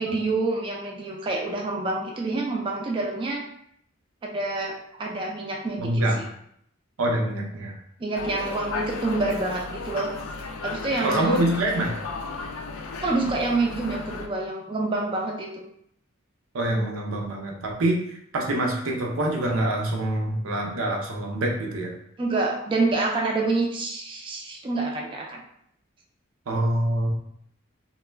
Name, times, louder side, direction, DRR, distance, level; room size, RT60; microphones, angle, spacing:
voice 1, 0.0-3.5 4.2-6.0 8.0-10.1 10.6-11.4 13.0-15.6 22.2-25.4, right 3 dB, 25° right, 0 dB, 0.3 m, -27 dB
voice 2, 5.8-6.2 7.0-7.8 11.0-12.0 16.5-21.9 26.5-27.1, right 1 dB, 85° right, 0 dB, 0.6 m, -25 dB
sound 1, 8.1-14.3, left 3 dB, 75° left, 0.3 m, -34 dB
2.2 x 2.1 x 3.2 m, 0.70 s
head